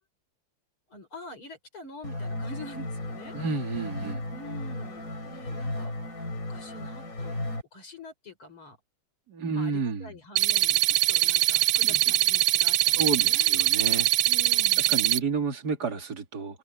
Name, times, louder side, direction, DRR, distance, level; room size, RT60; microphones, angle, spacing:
voice 1, 0.9-3.4 4.3-7.4 7.7-8.8 9.5-13.5 14.2-15.0, equal, 75° left, 5.8 m, -46 dB
sound 1, 2.0-7.6, left 1 dB, 40° left, 6.6 m, -35 dB
voice 2, 3.3-4.3 9.3-10.1 11.8-12.2 12.9-14.1 14.8-16.6, right 4 dB, 45° right, 2.8 m, -31 dB
sound 2, 10.4-15.2, right 15 dB, 75° right, 1.0 m, -23 dB
omnidirectional pair, 2.4 m